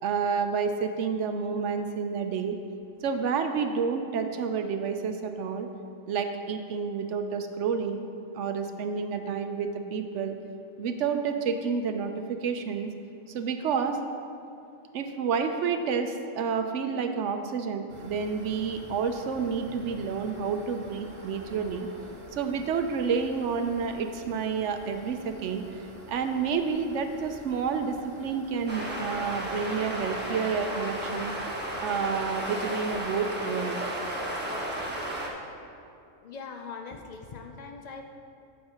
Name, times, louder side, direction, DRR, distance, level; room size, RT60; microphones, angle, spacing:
voice 1, 0.0-2.6 3.0-5.7 6.1-8.0 8.3-10.4 10.8-12.9 13.3-14.0 14.9-21.9 22.3-31.3 31.8-33.9, right 6 dB, 65° right, 7 dB, 0.9 m, -29 dB
sound 1, 17.9-35.3, right 1 dB, 45° right, 1.4 m, -48 dB
sound 2, 28.7-35.3, right 1 dB, 10° right, 1.1 m, -33 dB
voice 2, 36.2-38.0, left 5 dB, 80° left, 4 dB, 0.3 m, -41 dB
15.0 x 6.5 x 2.9 m, 2.5 s
omnidirectional pair, 1.4 m